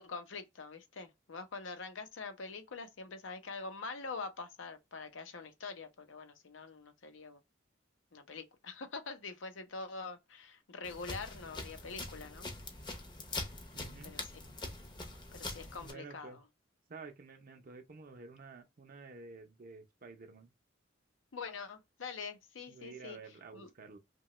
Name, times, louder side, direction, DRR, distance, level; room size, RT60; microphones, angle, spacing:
voice 1, 0.0-7.4 8.1-12.5 14.0-14.3 15.3-16.4 21.3-23.7, left 4 dB, 90° left, 0.7 m, -45 dB
sound 1, 10.8-15.9, left 2 dB, 25° left, 0.6 m, -43 dB
voice 2, 13.7-14.1 15.8-16.4 16.9-20.5 22.7-24.0, right 4 dB, 50° right, 0.5 m, -51 dB
2.8 x 2.2 x 3.0 m
head